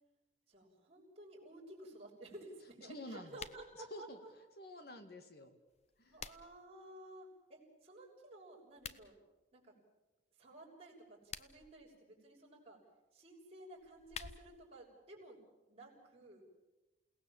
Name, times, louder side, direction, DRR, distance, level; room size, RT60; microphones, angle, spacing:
voice 1, 0.5-4.3 6.1-9.1 9.5-9.7 10.4-12.8 13.1-15.4 15.7-16.4, right 1 dB, 30° right, -3 dB, 6.6 m, -54 dB
voice 2, 2.9-3.4 3.9-4.2 4.6-5.5 6.0-6.2, left 1 dB, 55° left, 7 dB, 2.4 m, -49 dB
sound 1, 3.3-3.7 5.7-6.7 8.7-9.0 11.1-11.7 13.7-14.7, left 6 dB, 35° left, 0.8 m, -49 dB
29.0 x 18.0 x 7.5 m, 1.1 s
head